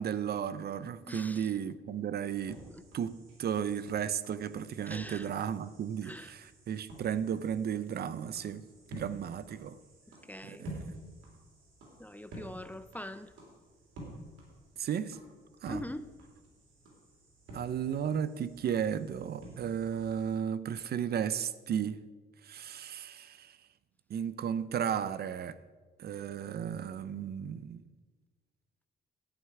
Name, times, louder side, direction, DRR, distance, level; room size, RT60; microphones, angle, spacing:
voice 1, 0.0-2.6 2.9-8.6 8.9-9.8 10.4-11.0 14.8-15.2 15.6-15.8 17.5-22.0 22.4-23.6 24.1-25.6 26.0-27.8, right 8 dB, 55° right, 0.5 m, -34 dB
voice 2, 1.1-1.5 2.7-2.8 4.9-5.4 6.0-6.3 10.3-10.7 12.0-13.3 15.7-16.1, left 1 dB, 10° left, 0.4 m, -43 dB
sound 1, 2.2-20.3, right 1 dB, 85° right, 3.3 m, -51 dB
11.5 x 9.1 x 4.7 m
cardioid pair, 90°, 20 cm